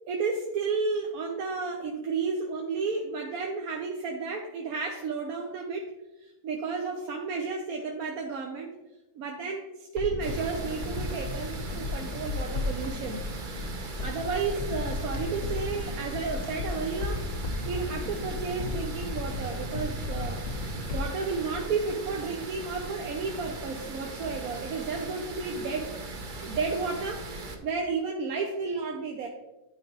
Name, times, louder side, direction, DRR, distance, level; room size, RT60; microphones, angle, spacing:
voice 1, 0.1-5.9 6.2-8.7 9.1-17.2 17.6-25.9 26.4-27.3 27.6-29.3, right 4 dB, 75° right, 1 dB, 1.2 m, -32 dB
sound 1, 10.0-22.4 22.7-22.8, left 2 dB, 65° left, 1.3 m, -35 dB
sound 2, 10.2-27.6, right 3 dB, 45° right, 0.8 m, -39 dB
11.0 x 4.9 x 3.0 m, 0.99 s
omnidirectional pair, 1.5 m